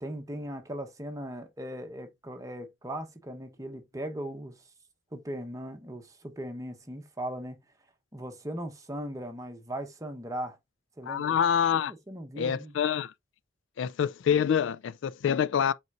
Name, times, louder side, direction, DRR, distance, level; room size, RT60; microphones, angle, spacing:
voice 1, 0.0-4.6 5.1-7.6 8.1-10.6 11.0-11.4 11.7-12.7, right 1 dB, 15° right, 1.1 m, -38 dB
voice 2, 11.1-11.9 12.4-13.1 13.8-15.7, left 8 dB, 70° left, 0.3 m, -26 dB
8.1 x 4.5 x 2.6 m
head